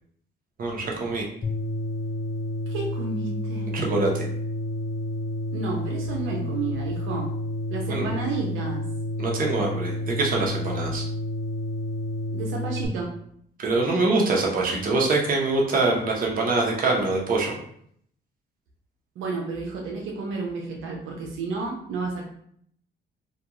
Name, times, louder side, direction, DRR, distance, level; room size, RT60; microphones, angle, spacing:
voice 1, 0.6-1.3 3.7-4.3 7.9-8.1 9.2-11.0 13.6-17.5, right 3 dB, 45° right, -1 dB, 0.8 m, -24 dB
sound 1, 1.4-12.9, left 1 dB, 35° left, 0.4 m, -30 dB
voice 2, 2.7-3.7 5.5-7.4 7.7-8.9 12.3-13.2 19.2-22.2, right 4 dB, 80° right, -1 dB, 0.6 m, -31 dB
2.4 x 2.2 x 2.9 m, 0.66 s
cardioid pair, 90°, 20 cm